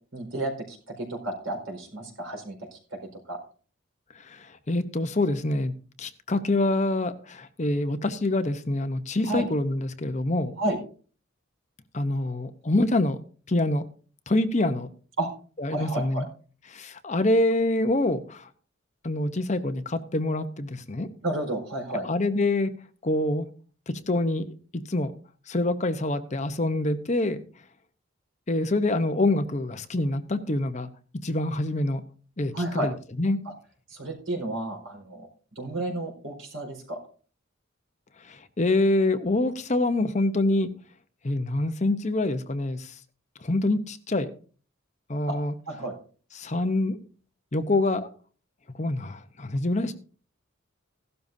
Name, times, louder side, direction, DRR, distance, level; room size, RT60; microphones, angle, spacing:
voice 1, 0.1-3.0 3.3-3.4 9.2-9.5 10.6-10.8 15.2-15.3 15.7-16.2 21.2-22.1 32.5-32.9 33.4-33.5 33.9-35.3 35.6-37.0 45.3-45.4 45.7-45.9, right 1 dB, 85° right, 3 dB, 4.6 m, -31 dB
voice 2, 4.3-5.7 6.0-10.5 11.9-13.2 13.5-13.8 14.3-14.9 15.6-16.3 16.7-18.5 19.0-21.1 22.0-22.7 23.0-23.4 23.9-24.5 24.9-25.1 25.5-27.4 28.5-30.9 31.2-32.0 32.4-32.5 32.8-32.9 33.2-33.4 38.6-40.7 41.2-42.9 43.4-44.3 45.1-45.5 46.4-47.0 47.5-48.1 48.8-49.9, left 2 dB, 35° left, 9 dB, 0.8 m, -25 dB
16.0 x 12.5 x 2.7 m, 0.40 s
head